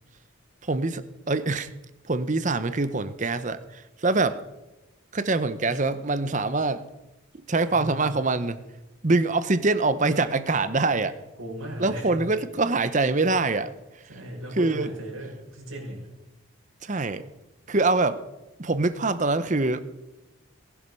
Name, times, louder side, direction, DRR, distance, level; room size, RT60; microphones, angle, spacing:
voice 1, 0.6-1.7 2.0-4.4 5.1-6.8 7.5-8.6 9.0-11.2 11.8-14.0 14.6-14.9 16.8-17.2 17.7-18.2 18.6-19.8, right 3 dB, 35° right, 13 dB, 0.8 m, -24 dB
voice 2, 7.7-8.0 11.4-12.2 14.1-16.0, right 1 dB, 80° right, -1 dB, 5.9 m, -37 dB
19.0 x 11.0 x 5.5 m, 1.0 s
head